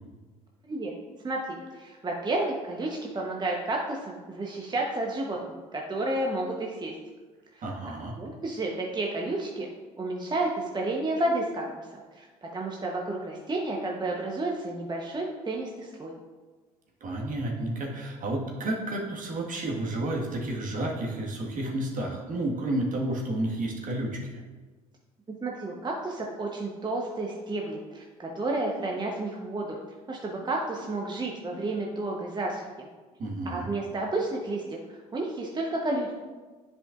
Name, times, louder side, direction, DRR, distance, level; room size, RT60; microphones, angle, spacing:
voice 1, 1.2-5.4 5.7-6.9 7.5-9.7 10.0-12.3 12.5-16.1 25.4-29.8 30.1-32.9 33.5-34.6 34.9-36.1, right 2 dB, 25° right, -1 dB, 1.0 m, -31 dB
voice 2, 7.6-8.2 17.0-24.4 33.2-33.7, right 1 dB, 45° right, -1 dB, 1.7 m, -31 dB
10.5 x 5.2 x 2.5 m, 1.3 s
hypercardioid pair, 60°, 18 cm